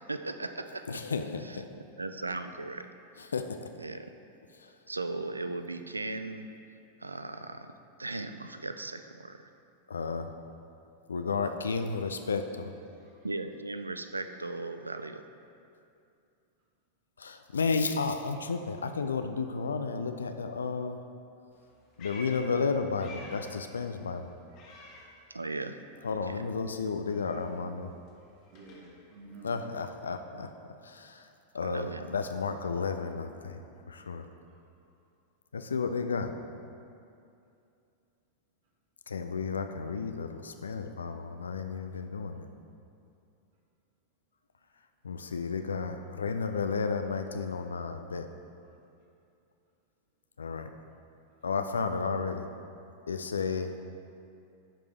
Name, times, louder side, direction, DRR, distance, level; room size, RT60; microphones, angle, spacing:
voice 1, 0.1-0.8 1.4-1.6 2.0-2.9 3.2-3.3 3.8-4.1 4.9-6.5 7.0-9.5 13.2-15.2 25.3-25.8 26.1-26.4 31.6-32.1, right 2 dB, 80° right, 9 dB, 0.3 m, -37 dB
voice 2, 0.9-1.7 3.3-3.7 4.5-4.7 9.9-10.4 11.1-12.7 17.2-21.0 22.0-24.3 26.0-27.9 29.4-30.5 30.8-31.3 31.5-34.3 35.5-36.3 39.1-42.5 45.0-48.3 50.4-50.8 51.4-52.5 53.1-53.7, left 4 dB, 70° left, 7 dB, 0.3 m, -32 dB
voice 3, 12.9-13.3 24.5-25.1 28.5-29.6 34.4-34.6 48.6-48.8, right 2 dB, 50° right, -2 dB, 1.0 m, -53 dB
Meow, 21.5-23.7 24.0-25.7 25.9-30.1, left 2 dB, 40° left, 1.3 m, -52 dB
11.0 x 5.1 x 3.3 m, 2.6 s
figure-of-eight pair, 90°, 0 cm